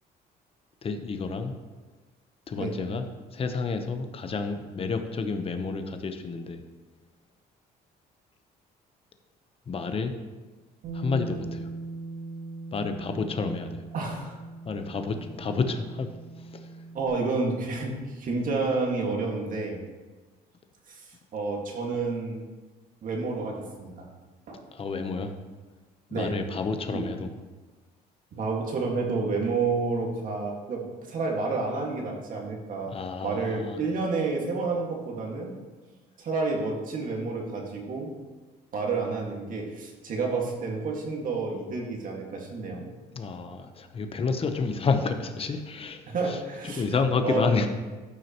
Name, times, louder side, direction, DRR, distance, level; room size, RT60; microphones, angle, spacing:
voice 1, 0.8-1.5 2.5-3.1 3.3-6.6 9.7-10.1 10.9-11.7 12.7-13.8 14.7-16.1 16.4-16.7 24.7-25.3 26.1-27.3 32.8-33.8 43.1-46.0 46.3-47.7, left 4 dB, 35° left, 7 dB, 0.9 m, -30 dB
Bass guitar, 10.8-17.1, right 3 dB, 80° right, 2.6 m, -40 dB
voice 2, 13.9-14.4 16.9-19.8 20.9-22.4 23.0-24.1 24.5-24.6 26.1-26.4 26.9-27.1 28.3-35.6 36.2-38.1 38.7-42.8 46.1-46.8 47.2-47.5, right 3 dB, 55° right, 0 dB, 2.0 m, -30 dB
13.5 x 6.3 x 3.0 m, 1.3 s
cardioid pair, 110°, 17 cm